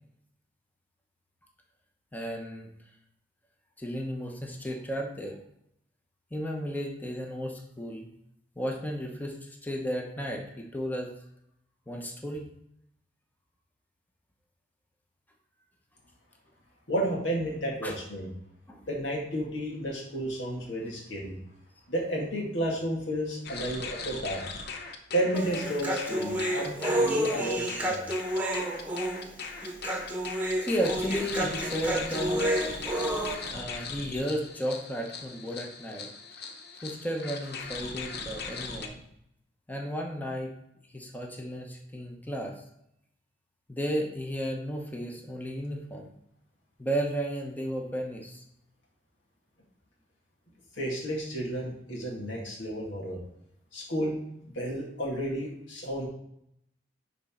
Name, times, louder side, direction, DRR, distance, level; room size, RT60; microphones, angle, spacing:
voice 1, 2.1-2.7 3.8-5.4 6.3-8.1 8.6-11.1 11.9-12.5 17.8-17.9 18.7-18.8 26.3-26.4 30.6-32.4 33.4-36.1 36.8-39.0 39.7-40.5 40.9-42.5 43.7-46.1 46.8-48.4, equal, 10° left, 1 dB, 0.9 m, -33 dB
voice 2, 16.9-18.3 18.9-21.4 21.9-24.4 25.1-28.0 50.8-53.2 53.7-54.2 54.5-56.1, right 1 dB, 90° left, -1 dB, 2.1 m, -32 dB
sound 1, 23.4-38.9, left 5 dB, 60° left, 0.8 m, -39 dB
Human voice, 25.3-33.4, right 1 dB, 10° right, 1.2 m, -30 dB
10.0 x 4.1 x 3.8 m, 0.77 s
head